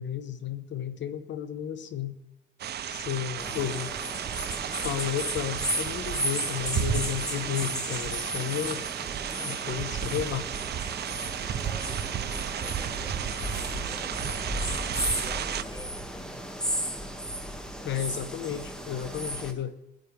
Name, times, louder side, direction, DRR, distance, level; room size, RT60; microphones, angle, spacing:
voice 1, 0.0-2.2 2.9-3.9 4.8-8.8 9.4-10.5 17.8-19.7, left 10 dB, 65° left, 11 dB, 1.1 m, -33 dB
sound 1, 2.6-15.6, right 9 dB, 55° right, 0.6 m, -33 dB
sound 2, 3.4-19.5, equal, 5° left, 1.9 m, -35 dB
voice 2, 9.1-9.6 10.1-10.3 11.4-16.4, left 1 dB, 20° left, 2 dB, 2.8 m, -49 dB
21.0 x 9.4 x 3.4 m, 0.86 s
cardioid pair, 90°, 20 cm